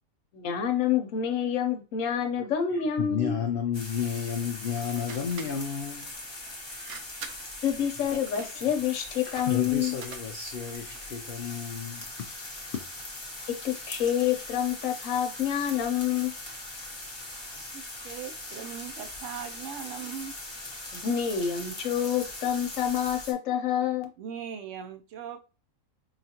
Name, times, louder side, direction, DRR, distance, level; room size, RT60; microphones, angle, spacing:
voice 1, 0.3-3.4 7.6-10.0 13.6-16.3 20.9-24.1, left 9 dB, 70° left, 1.1 m, -27 dB
voice 2, 2.4-6.1 8.1-8.3 8.5-8.6 9.3-12.4 12.6-12.8, left 7 dB, 85° left, 0.5 m, -32 dB
sound 1, 3.7-23.3, left 2 dB, 25° left, 0.8 m, -41 dB
sound 2, 4.8-11.1, right 6 dB, 90° right, 1.1 m, -47 dB
voice 3, 17.7-20.4 24.2-25.4, right 8 dB, 65° right, 0.9 m, -39 dB
4.8 x 2.4 x 2.8 m
omnidirectional pair, 1.5 m